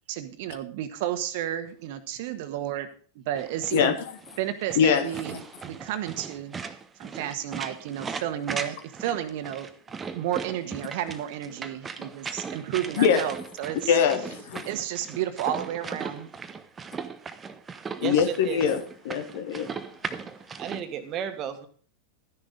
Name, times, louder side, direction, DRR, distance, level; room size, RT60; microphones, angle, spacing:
voice 1, 0.1-2.9 3.1-4.0 4.4-6.6 7.0-9.7 10.1-13.9 14.6-16.3, right 11 dB, 50° right, 1.4 m, -32 dB
sound 1, 3.4-20.8, right 5 dB, 20° right, 1.0 m, -38 dB
voice 2, 13.9-14.7 18.0-19.7, left 7 dB, 55° left, 1.4 m, -23 dB
voice 3, 18.0-18.6 20.6-21.7, right 9 dB, 35° right, 1.7 m, -33 dB
13.0 x 10.0 x 3.8 m
figure-of-eight pair, 90°, 0 cm